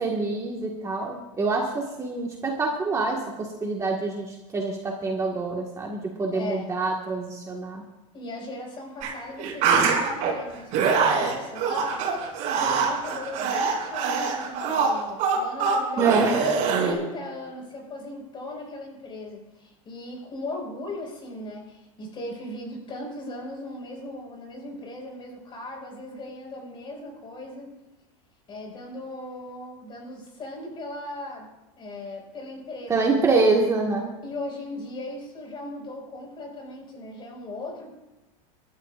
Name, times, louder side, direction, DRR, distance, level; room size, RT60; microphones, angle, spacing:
voice 1, 0.0-7.8 16.0-16.4 32.9-34.1, right 3 dB, 20° right, -1 dB, 1.6 m, -26 dB
voice 2, 6.3-6.7 8.1-12.1 12.5-16.1 16.8-27.7 28.5-31.5 31.8-33.2 34.2-37.9, left 1 dB, 30° left, 1 dB, 5.2 m, -38 dB
sound 1, 9.0-9.1 9.4-10.3 10.7-16.9, right 5 dB, 50° right, 5.6 m, -24 dB
25.5 x 12.5 x 2.5 m, 1.1 s
supercardioid pair, 130°, 17 cm